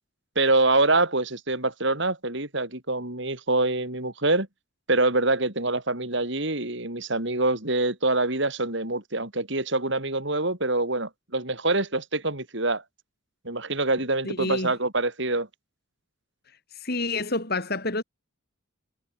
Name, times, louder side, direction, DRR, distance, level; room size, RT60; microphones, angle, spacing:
voice 1, 0.4-4.5 4.9-12.8 13.4-15.5, right 2 dB, 55° right, 3.9 m, -25 dB
voice 2, 14.2-14.7 16.8-18.0, left 2 dB, 45° left, 5.1 m, -28 dB
head